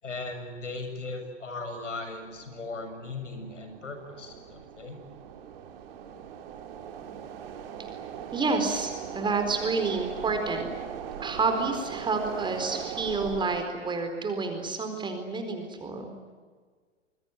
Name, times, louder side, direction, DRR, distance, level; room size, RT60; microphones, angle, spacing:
voice 1, 0.0-5.0, left 3 dB, 75° left, 6 dB, 7.1 m, -38 dB
sound 1, 2.1-13.7, right 8 dB, 50° right, 3.3 m, -40 dB
voice 2, 6.9-7.2 7.7-10.7 11.2-16.1, right 4 dB, 10° right, 6 dB, 4.3 m, -30 dB
27.0 x 22.0 x 9.4 m, 1.5 s
figure-of-eight pair, 110°, 37 cm